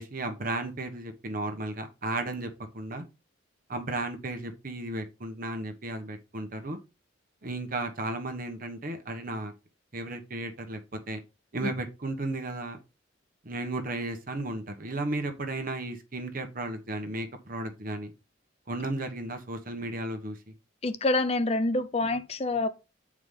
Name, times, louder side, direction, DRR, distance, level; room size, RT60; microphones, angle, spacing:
voice 1, 0.0-3.0 3.7-6.8 7.4-9.5 9.9-11.2 11.5-12.8 13.4-18.1 18.7-20.4, right 2 dB, 45° right, 1.1 m, -34 dB
voice 2, 20.8-22.7, left 2 dB, 30° left, 0.5 m, -26 dB
8.3 x 4.8 x 3.7 m
head